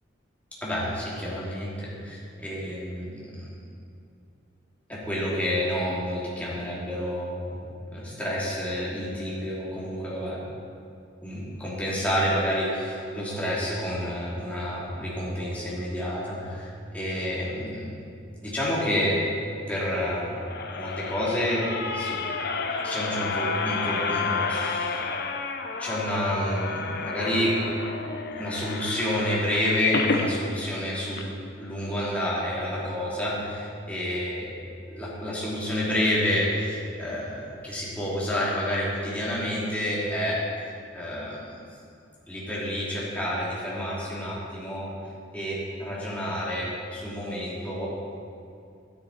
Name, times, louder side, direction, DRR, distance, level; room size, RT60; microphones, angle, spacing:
voice 1, 0.6-3.5 4.9-7.6 7.9-10.4 11.2-17.9 18.4-19.2 19.7-22.2 22.8-25.0 25.8-27.6 28.3-31.3 31.6-40.4 40.9-41.6 42.3-44.9 45.3-47.9, equal, 10° left, -7 dB, 3.0 m, -29 dB
sound 1, 20.1-30.3 30.8-30.9 31.1-31.2, left 4 dB, 60° left, 0.8 m, -30 dB
12.5 x 10.0 x 4.3 m, 2.5 s
head